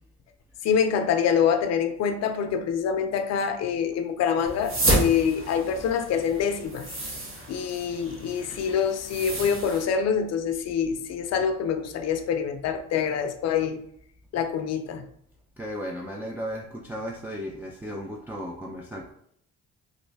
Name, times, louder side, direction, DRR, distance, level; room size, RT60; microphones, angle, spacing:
voice 1, 0.6-6.9 7.5-13.8 14.3-15.1, left 7 dB, 60° left, 0.5 m, -25 dB
sound 1, 4.4-9.8, right 1 dB, 45° right, 1.3 m, -30 dB
voice 2, 15.6-19.1, equal, 5° right, 0.4 m, -35 dB
3.1 x 2.6 x 3.3 m
cardioid pair, 90°, 30 cm